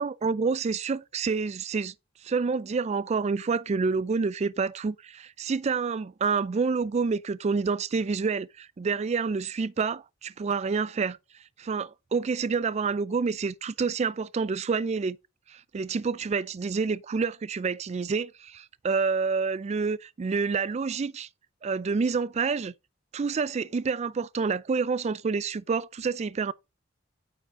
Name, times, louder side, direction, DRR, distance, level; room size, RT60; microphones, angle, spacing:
voice 1, 0.0-1.9 2.2-11.2 11.6-15.2 15.5-21.3 21.6-22.7 23.1-26.5, right 5 dB, 35° right, 0.4 m, -28 dB
8.8 x 4.9 x 3.6 m
head